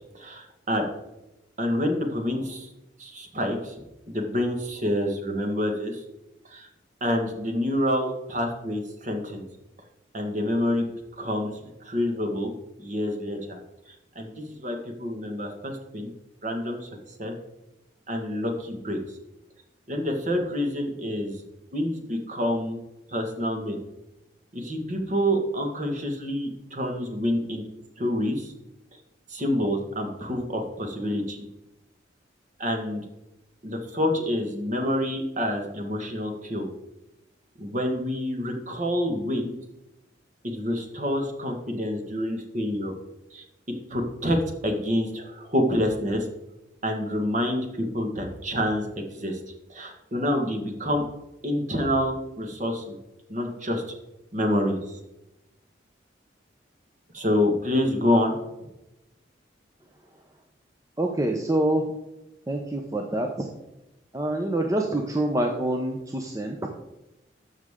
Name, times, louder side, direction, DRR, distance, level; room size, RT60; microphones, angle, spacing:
voice 1, 0.1-0.8 1.6-2.7 3.0-3.8 4.1-6.0 6.5-6.7 7.0-9.4 10.1-10.9 11.2-12.5 12.8-13.6 14.1-16.1 16.4-16.9 17.2-17.3 18.1-19.0 19.9-21.4 21.7-22.8 23.1-23.8 24.5-27.6 28.0-28.5 29.3-31.5 32.6-33.0 33.6-36.7 37.6-39.5 40.4-42.9 43.3-43.4 43.9-46.3 46.8-49.4 49.7-51.0 51.4-52.9 53.3-53.8 54.3-55.0 57.1-58.4, left 1 dB, 40° right, 3 dB, 1.6 m, -27 dB
voice 2, 61.0-61.8 62.5-63.5 64.1-66.7, right 1 dB, 15° right, 2 dB, 0.7 m, -26 dB
13.0 x 6.4 x 3.7 m, 0.92 s
head